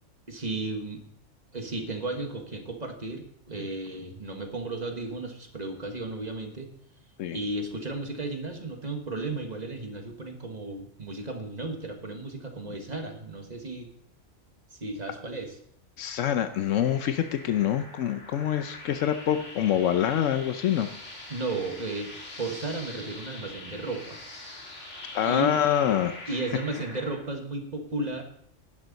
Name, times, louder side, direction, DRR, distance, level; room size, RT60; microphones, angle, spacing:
voice 1, 0.3-1.0 1.5-6.7 7.3-13.9 14.7-15.6 21.3-24.2 25.2-25.6 26.3-28.2, right 2 dB, 35° right, 4 dB, 1.5 m, -34 dB
voice 2, 16.0-20.9 25.1-26.1, left 10 dB, 85° left, 9 dB, 1.0 m, -25 dB
sound 1, 16.4-27.2, left 2 dB, 70° left, 2.8 m, -44 dB
11.5 x 10.5 x 4.0 m, 0.69 s
omnidirectional pair, 1.3 m